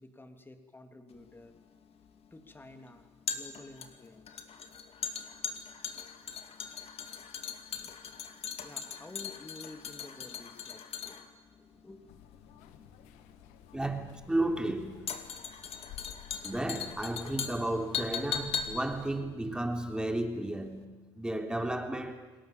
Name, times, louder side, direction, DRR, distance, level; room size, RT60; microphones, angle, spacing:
voice 1, 0.0-1.6 2.3-4.5 7.2-7.3 7.7-8.0 8.3-11.2 11.6-12.0 13.0-13.1, left 2 dB, 15° left, 3.2 m, -51 dB
sound 1, 1.1-20.4 20.7-20.8, left 7 dB, 50° left, 2.4 m, -40 dB
sound 2, 12.1-19.2, left 12 dB, 80° left, 1.5 m, -54 dB
voice 2, 13.7-15.4 16.4-22.3, right 1 dB, 5° right, 3.5 m, -33 dB
29.0 x 20.0 x 7.5 m
supercardioid pair, 75°, 13 cm